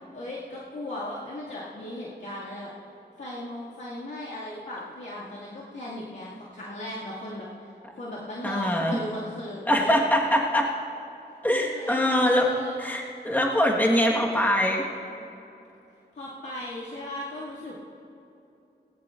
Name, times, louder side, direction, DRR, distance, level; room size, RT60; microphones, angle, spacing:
voice 1, 0.1-2.7 3.2-7.5 7.9-9.9 11.6-12.8 16.1-17.7, left 1 dB, 85° left, -9 dB, 2.1 m, -37 dB
voice 2, 8.4-9.0 9.7-10.7 11.4-12.5 12.8-14.8, equal, 10° left, -2 dB, 1.4 m, -23 dB
18.5 x 18.5 x 2.5 m, 2.8 s
wide cardioid pair, 80°, 18 cm